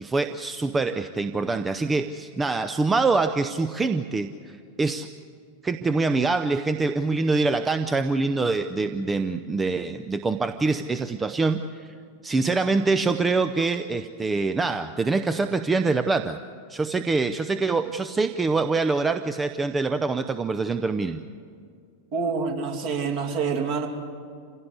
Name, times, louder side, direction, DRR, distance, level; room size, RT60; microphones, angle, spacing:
voice 1, 0.0-5.1 5.6-11.9 12.2-16.4 16.7-21.2, right 3 dB, 15° right, 9 dB, 0.7 m, -25 dB
voice 2, 22.1-23.9, right 5 dB, 45° right, 2 dB, 2.8 m, -27 dB
26.5 x 16.5 x 8.0 m, 2.3 s
figure-of-eight pair, 90°, 0 cm